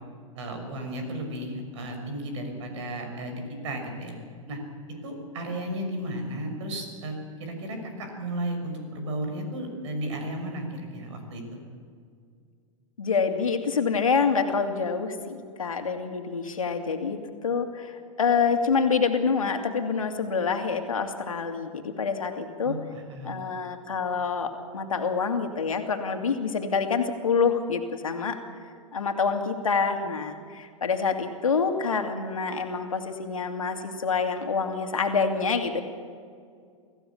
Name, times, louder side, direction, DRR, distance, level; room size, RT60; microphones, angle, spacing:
voice 1, 0.3-4.2 4.5-4.6 5.0-11.4 22.6-23.4, right 1 dB, 60° right, 4 dB, 6.1 m, -34 dB
voice 2, 13.0-22.8 23.2-28.4 28.9-35.8, left 5 dB, 85° left, 5 dB, 2.4 m, -27 dB
25.0 x 15.0 x 7.2 m, 2.2 s
hypercardioid pair, 105°, 17 cm